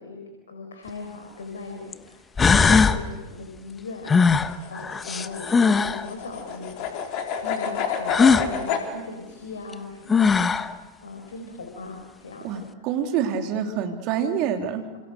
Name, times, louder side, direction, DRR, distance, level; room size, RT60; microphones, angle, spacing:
voice 1, 0.0-7.0 7.4-10.7 11.0-12.6, left 3 dB, 70° left, 4 dB, 4.1 m, -38 dB
sound 1, 0.9-1.0 1.9-2.0 2.4-3.0 4.1-6.0 8.1-8.5 9.7-9.8 10.1-10.7, left 5 dB, 15° left, 1.1 m, -19 dB
sound 2, 4.1-8.9, left 7 dB, 45° left, 4.0 m, -30 dB
voice 2, 12.4-14.9, right 8 dB, 40° right, 5 dB, 3.1 m, -26 dB
28.5 x 28.5 x 6.6 m, 1.2 s
figure-of-eight pair, 90°, 0 cm